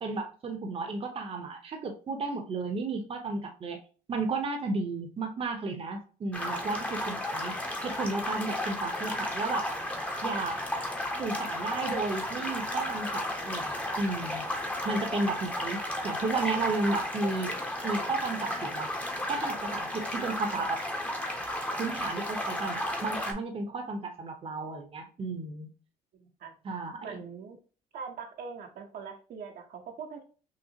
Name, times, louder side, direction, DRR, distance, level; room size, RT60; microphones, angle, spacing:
voice 1, 0.0-3.8 4.1-9.7 10.2-10.6 11.2-14.4 14.8-17.5 17.8-18.9 19.3-20.8 21.8-25.7 26.6-27.0, right 3 dB, 35° right, 4 dB, 0.8 m, -33 dB
sound 1, 6.3-23.3, left 1 dB, 10° left, 0.8 m, -33 dB
voice 2, 26.1-26.5 27.0-27.6 27.9-30.2, right 5 dB, 60° right, 3 dB, 0.8 m, -42 dB
5.7 x 2.0 x 2.8 m, 0.38 s
cardioid pair, 110°, 17 cm